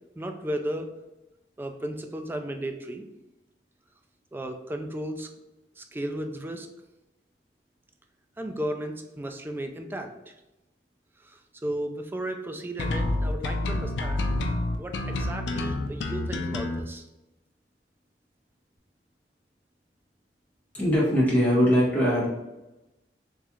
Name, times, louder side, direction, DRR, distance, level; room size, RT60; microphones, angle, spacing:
voice 1, 0.2-0.9 1.6-3.1 4.3-5.3 5.8-6.7 8.4-10.3 11.2-14.3 14.8-17.1, right 1 dB, 10° right, 4 dB, 0.3 m, -34 dB
sound 1, 12.8-16.8, left 2 dB, 90° left, 0.4 m, -28 dB
voice 2, 20.7-22.3, equal, 10° left, -8 dB, 1.5 m, -21 dB
3.7 x 3.1 x 3.0 m, 0.98 s
head